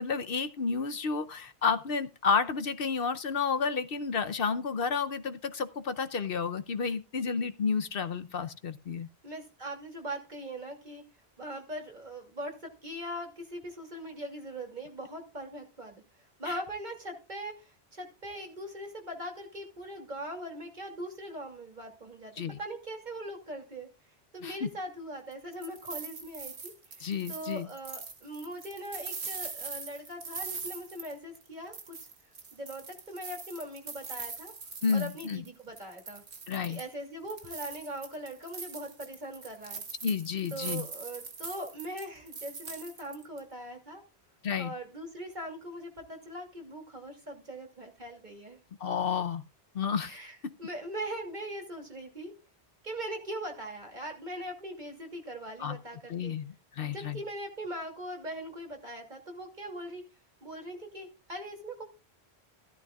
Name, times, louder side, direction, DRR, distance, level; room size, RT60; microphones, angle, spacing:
voice 1, 0.0-9.1 16.5-16.6 22.4-22.6 24.4-24.7 27.0-27.7 34.8-35.4 36.5-36.8 40.0-40.8 44.4-44.7 48.8-49.4 49.7-50.2 50.4-50.5 55.6-55.8 56.1-57.2, left 5 dB, 65° left, 11 dB, 0.9 m, -31 dB
voice 2, 9.2-11.0 11.4-16.0 16.4-22.3 22.6-23.9 24.3-32.0 32.5-34.5 34.9-36.2 36.7-39.8 40.5-44.0 44.6-48.6 50.0-52.3 52.8-56.3 56.9-60.0 60.4-61.8, right 1 dB, 45° right, 1 dB, 2.8 m, -41 dB
sound 1, 25.3-31.5 31.7-35.5 35.8-36.9 37.3-43.4, right 5 dB, 90° right, 1.7 m, -42 dB
14.5 x 13.0 x 2.4 m, 0.31 s
omnidirectional pair, 1.1 m